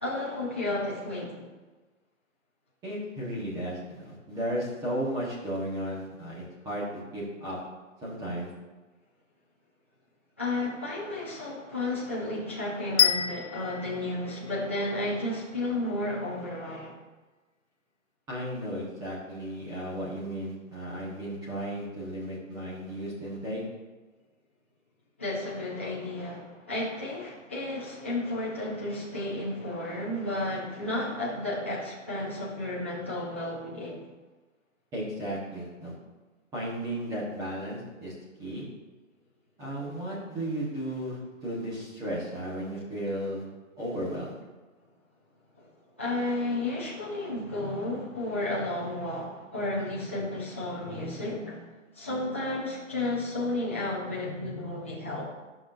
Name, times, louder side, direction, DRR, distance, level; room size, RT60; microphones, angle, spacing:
voice 1, 0.0-1.5 10.4-17.0 25.2-34.1 45.6-45.7 46.0-55.3, left 2 dB, 10° left, -7 dB, 0.4 m, -32 dB
voice 2, 2.8-6.8 7.1-7.6 8.0-8.5 18.3-23.6 34.9-35.9 36.5-38.1 38.4-38.6 39.6-43.4 43.8-44.3, right 1 dB, 10° right, -7 dB, 1.1 m, -34 dB
sound 1, 13.0-15.1, left 8 dB, 60° left, 0.5 m, -27 dB
12.5 x 5.9 x 2.5 m, 1.2 s
hypercardioid pair, 150°, 40 cm